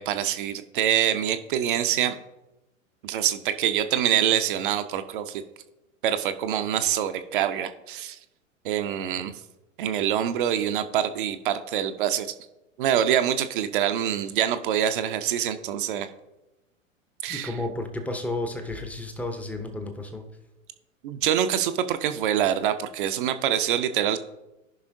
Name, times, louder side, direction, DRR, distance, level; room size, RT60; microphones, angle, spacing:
voice 1, 0.0-2.2 3.0-5.4 6.0-8.2 8.6-9.3 9.8-12.3 12.8-16.1 17.2-17.5 21.0-24.2, right 10 dB, 40° right, 9 dB, 0.6 m, -25 dB
voice 2, 17.3-20.2, left 2 dB, 5° left, 6 dB, 0.7 m, -32 dB
14.5 x 5.6 x 2.6 m, 0.97 s
figure-of-eight pair, 100°, 40 cm